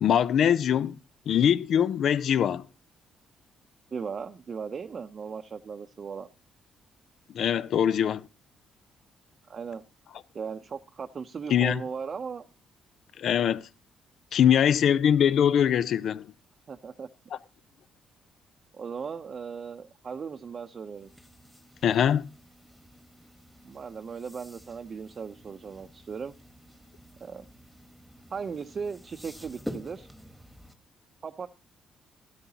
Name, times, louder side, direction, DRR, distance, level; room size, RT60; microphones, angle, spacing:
voice 1, 0.0-1.0 1.3-2.6 7.3-8.3 11.5-11.8 13.2-13.6 14.3-16.3 21.8-22.3, left 9 dB, 65° left, 0.6 m, -22 dB
voice 2, 3.9-6.3 9.5-9.8 10.3-12.5 16.7-17.1 18.7-21.1 23.6-26.3 27.2-27.4 28.3-30.1 31.2-31.5, right 6 dB, 45° right, 0.7 m, -37 dB
sound 1, 20.9-30.7, equal, ahead, 1.3 m, -47 dB
14.0 x 12.5 x 2.9 m
cardioid pair, 90°, 0 cm